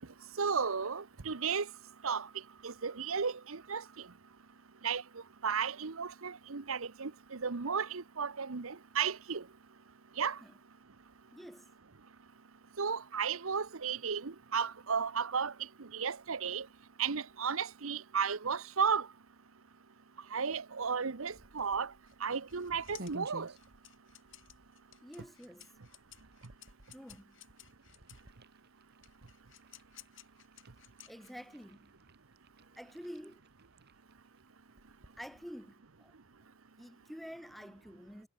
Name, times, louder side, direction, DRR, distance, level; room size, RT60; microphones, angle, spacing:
voice 1, 0.4-1.7 2.0-2.3 2.6-3.8 4.8-5.0 5.4-9.4 10.2-10.4 12.8-15.5 15.9-16.7 17.0-19.1 20.3-21.9 22.2-23.5, right 6 dB, 75° right, 1.0 m, -34 dB
voice 2, 11.3-11.7 25.0-25.7 26.9-27.4 31.1-31.9 32.8-33.4 35.2-36.1 36.8-38.3, equal, ahead, 7.6 m, -48 dB
sound 1, 21.2-35.7, right 1 dB, 50° right, 5.2 m, -56 dB
sound 2, 22.1-28.3 29.0-31.6, left 13 dB, 60° left, 4.6 m, -57 dB
head